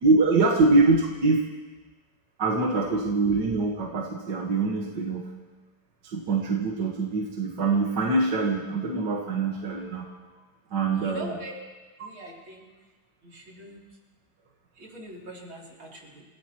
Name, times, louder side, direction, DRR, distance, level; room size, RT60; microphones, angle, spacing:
voice 1, 0.0-1.4 2.4-5.3 6.0-10.1 10.7-11.3, right 3 dB, 60° right, -1 dB, 2.0 m, -24 dB
voice 2, 10.9-11.5 12.0-12.7 13.2-13.8 14.7-16.2, right 1 dB, 75° right, -3 dB, 4.0 m, -42 dB
29.0 x 16.0 x 3.0 m, 1.3 s
omnidirectional pair, 2.2 m